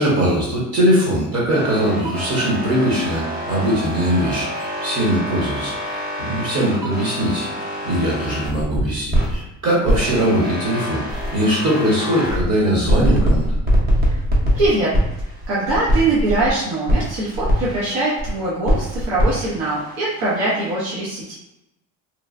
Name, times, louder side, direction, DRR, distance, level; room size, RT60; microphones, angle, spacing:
voice 1, 0.0-7.5 7.8-11.0 11.3-13.6, equal, 45° right, -5 dB, 0.9 m, -20 dB
sound 1, 1.5-9.4 9.8-12.5 12.9-16.5 16.9-18.3 18.6-20.7, equal, 25° right, 0.6 m, -23 dB
voice 2, 14.5-15.0 15.5-21.4, right 2 dB, 85° right, -7 dB, 0.9 m, -22 dB
3.0 x 2.1 x 2.5 m, 0.87 s
cardioid pair, 155°, 37 cm